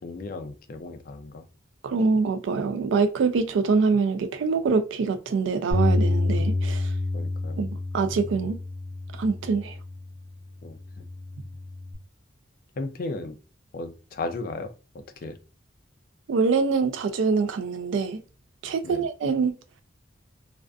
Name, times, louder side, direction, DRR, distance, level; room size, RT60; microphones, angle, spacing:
voice 1, 0.0-1.4 7.1-7.6 10.6-11.1 12.8-13.4 13.7-15.4 18.8-19.1, left 2 dB, 45° left, 0.3 m, -36 dB
voice 2, 1.8-6.9 7.6-8.6 9.1-9.8 16.3-18.2 18.6-19.5, right 4 dB, 70° right, 0.3 m, -24 dB
Bass guitar, 5.7-10.2 10.8-11.9, left 2 dB, 55° right, 1.0 m, -28 dB
2.4 x 2.4 x 2.2 m
head